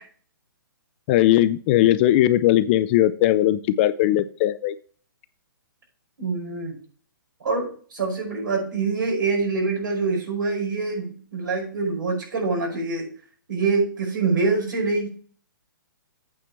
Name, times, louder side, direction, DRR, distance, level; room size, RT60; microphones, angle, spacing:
voice 1, 1.1-4.8, left 13 dB, 30° left, 15 dB, 0.4 m, -19 dB
voice 2, 6.2-6.8 7.4-13.1 13.5-15.1, right 4 dB, 65° right, -1 dB, 5.2 m, -25 dB
8.5 x 4.4 x 7.2 m, 0.44 s
hypercardioid pair, 140°, 11 cm